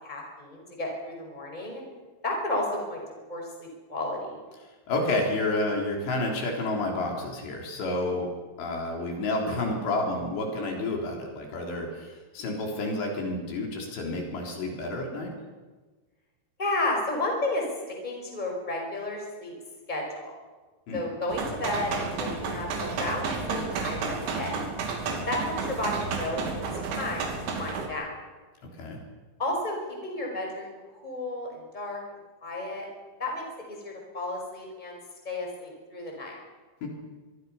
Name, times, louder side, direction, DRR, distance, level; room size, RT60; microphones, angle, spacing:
voice 1, 0.0-1.8 2.2-3.0 3.3-4.4 16.6-17.6 18.0-19.5 19.9-20.3 20.9-24.6 25.3-26.6 27.0-28.1 29.4-29.8 30.0-30.7 31.0-32.0 32.4-32.9 33.2-35.0 35.2-36.3, left 2 dB, 10° left, 1 dB, 4.9 m, -32 dB
voice 2, 4.9-8.3 8.6-15.3 20.9-21.0 28.8-29.0 36.8-36.9, left 2 dB, 70° left, 0 dB, 5.7 m, -30 dB
sound 1, 21.3-27.9, right 4 dB, 85° right, 5.0 m, -32 dB
24.5 x 24.0 x 5.7 m, 1.3 s
omnidirectional pair, 5.3 m